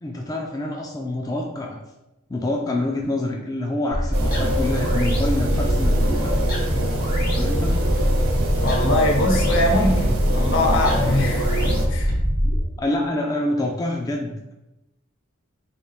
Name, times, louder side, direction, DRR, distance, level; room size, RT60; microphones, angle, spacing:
voice 1, 0.0-1.8 2.3-6.4 7.3-7.8 12.8-14.5, left 1 dB, 15° left, 1 dB, 0.3 m, -26 dB
sound 1, 3.9-12.6, equal, 45° left, 1.0 m, -23 dB
sound 2, 4.1-11.9, right 1 dB, 75° right, 0.7 m, -26 dB
voice 2, 8.6-12.1, left 1 dB, 65° left, 2 dB, 0.8 m, -22 dB
4.0 x 3.4 x 2.3 m, 0.93 s
head